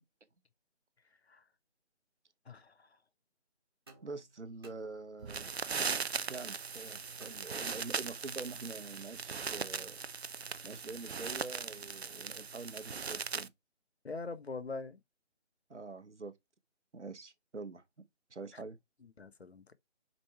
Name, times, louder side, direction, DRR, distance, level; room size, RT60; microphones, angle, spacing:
voice 1, 2.5-2.9 14.0-15.0 19.2-19.6, left 3 dB, 65° left, 0.9 m, -42 dB
sound 1, 3.9-5.5 7.2-8.2, right 3 dB, 20° right, 1.0 m, -60 dB
voice 2, 4.0-6.0 6.3-10.0 10.6-13.5 15.7-16.3 16.9-17.8 18.3-18.8, right 3 dB, 80° right, 1.1 m, -45 dB
sound 2, 5.2-13.5, right 5 dB, 65° right, 0.6 m, -39 dB
5.3 x 4.4 x 4.6 m
figure-of-eight pair, 160°, 35 cm